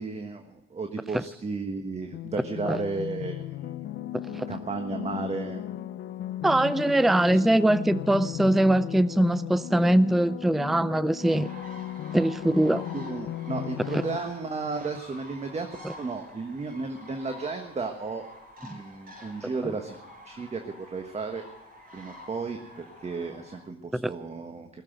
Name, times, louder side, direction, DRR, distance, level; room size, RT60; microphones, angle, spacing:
voice 1, 0.0-3.9 4.3-5.6 7.3-7.4 12.9-15.7 16.0-18.2 18.6-20.0 20.2-21.4 21.9-24.8, right 4 dB, 35° right, 6 dB, 1.4 m, -34 dB
sound 1, 2.1-14.2, left 12 dB, 65° left, 0.7 m, -36 dB
voice 2, 4.1-4.5 6.4-11.5 12.1-12.8 13.9-14.0 15.8-15.9 19.6-19.7 23.9-24.1, right 1 dB, ahead, 16 dB, 0.4 m, -22 dB
sound 2, 11.2-23.6, left 1 dB, 50° right, 5.1 m, -48 dB
19.5 x 7.4 x 9.1 m, 0.91 s
cardioid pair, 90°, 20 cm